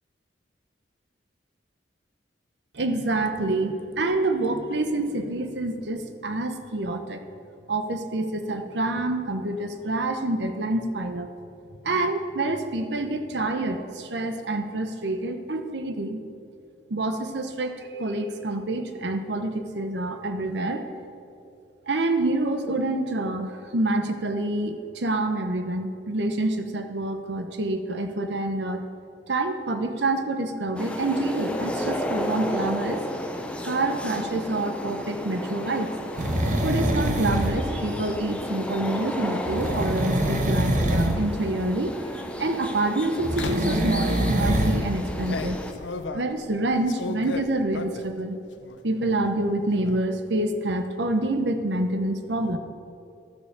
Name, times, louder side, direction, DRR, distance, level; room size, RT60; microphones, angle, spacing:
voice 1, 2.7-7.2 7.7-11.3 11.8-16.2 16.9-20.8 21.9-28.8 29.3-33.0 33.6-35.9 36.6-41.9 42.4-45.6 46.1-48.4 48.8-52.6, right 2 dB, 70° right, 7 dB, 0.9 m, -27 dB
sound 1, 30.8-45.7, equal, 5° left, 0.7 m, -33 dB
sound 2, 36.2-37.7 39.5-41.2 43.2-44.8 45.3-45.4, right 1 dB, 45° right, 1.0 m, -24 dB
sound 3, 37.4-37.6 39.3-39.6 40.4-41.2 41.9-42.2 43.3-43.8 44.4-48.2 48.6-49.1 49.4-50.0, left 3 dB, 85° left, 0.6 m, -36 dB
12.5 x 6.6 x 6.9 m, 2.6 s
head